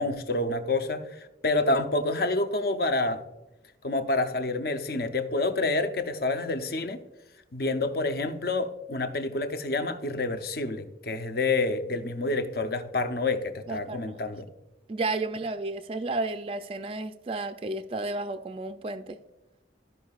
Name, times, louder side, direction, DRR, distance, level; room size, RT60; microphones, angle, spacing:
voice 1, 0.0-3.2 3.8-7.0 7.5-14.5, left 2 dB, 55° left, 7 dB, 0.6 m, -28 dB
voice 2, 13.7-14.2 14.9-19.2, right 2 dB, 30° right, 8 dB, 0.3 m, -32 dB
13.5 x 5.4 x 2.4 m, 1.0 s
head